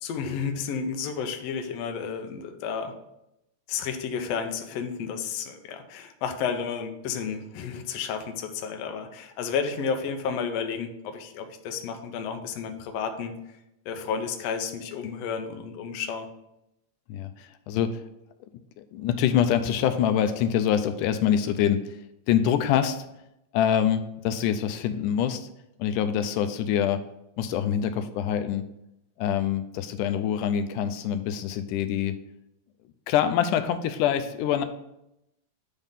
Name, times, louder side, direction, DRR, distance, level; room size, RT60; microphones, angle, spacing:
voice 1, 0.0-2.9 3.7-13.6 13.8-16.3, left 6 dB, 70° left, 6 dB, 1.7 m, -32 dB
voice 2, 17.1-18.0 18.8-23.1 23.5-25.5 25.8-27.0 27.4-28.6 29.2-32.2 33.1-34.6, left 9 dB, 85° left, 9 dB, 2.1 m, -25 dB
9.3 x 3.6 x 5.6 m, 0.84 s
omnidirectional pair, 3.6 m